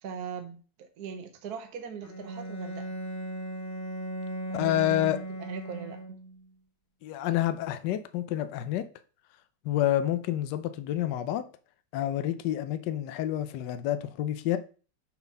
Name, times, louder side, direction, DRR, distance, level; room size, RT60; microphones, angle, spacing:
voice 1, 0.0-2.9 4.5-5.1 5.4-6.2, right 7 dB, 55° right, 1.2 m, -41 dB
Bowed string instrument, 2.0-6.5, right 1 dB, 30° left, 1.3 m, -37 dB
voice 2, 4.5-5.2 7.0-8.9 9.6-11.5 11.9-14.6, left 12 dB, 70° left, 1.1 m, -28 dB
7.0 x 4.0 x 5.5 m
omnidirectional pair, 2.4 m